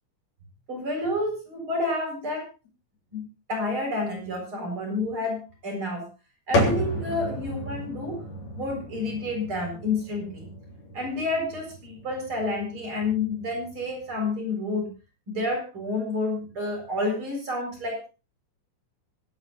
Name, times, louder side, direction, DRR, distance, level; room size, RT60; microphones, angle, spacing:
voice 1, 0.7-2.5 3.1-6.0 6.5-8.2 8.5-10.5 10.9-14.9 15.3-18.1, left 2 dB, 45° right, 1 dB, 8.1 m, -29 dB
sound 1, 6.5-14.3, left 1 dB, 65° left, 4.9 m, -32 dB
25.5 x 9.4 x 3.9 m, 0.32 s
omnidirectional pair, 3.4 m